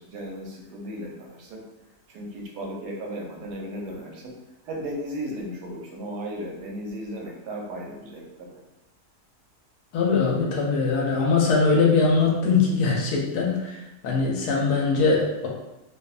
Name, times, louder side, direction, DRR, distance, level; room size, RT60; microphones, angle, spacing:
voice 1, 0.0-1.7 2.1-4.4 4.6-8.6, equal, 90° right, 0 dB, 1.1 m, -35 dB
voice 2, 9.9-13.8 14.0-15.5, left 4 dB, 85° left, -1 dB, 1.1 m, -21 dB
2.8 x 2.1 x 2.3 m, 0.98 s
omnidirectional pair, 1.7 m